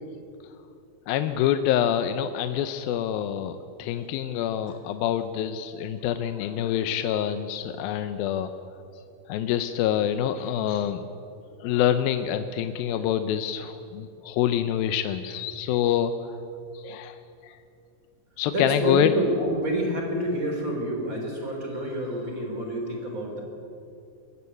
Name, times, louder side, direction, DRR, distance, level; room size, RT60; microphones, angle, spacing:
voice 1, 1.1-8.5 9.3-11.1 11.6-16.1 16.7-17.6 18.4-19.1, left 10 dB, 80° left, 9 dB, 2.4 m, -26 dB
voice 2, 18.5-23.4, right 1 dB, 25° right, 1 dB, 3.5 m, -28 dB
21.5 x 15.5 x 8.3 m, 2.7 s
omnidirectional pair, 4.3 m